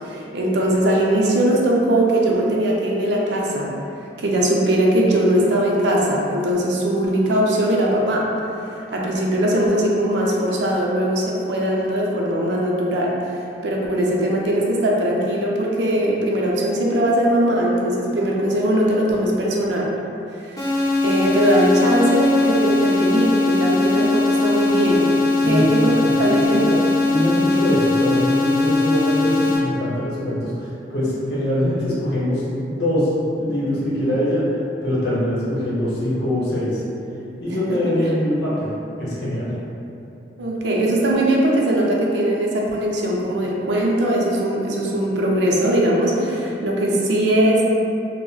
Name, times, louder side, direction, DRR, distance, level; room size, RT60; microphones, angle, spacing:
voice 1, 0.0-3.7 4.2-8.2 8.6-19.9 20.4-20.6 21.0-25.1 25.5-25.9 26.2-26.8 37.7-37.8 40.4-47.6, right 1 dB, 65° right, -3 dB, 0.4 m, -20 dB
sound 1, 20.6-29.6, left 3 dB, 20° left, 0.4 m, -20 dB
voice 2, 25.4-26.4 27.1-33.1 33.4-34.4 34.8-36.8 37.4-38.7 39.0-39.5, equal, 60° left, -8 dB, 0.8 m, -23 dB
3.6 x 2.0 x 2.3 m, 2.8 s
head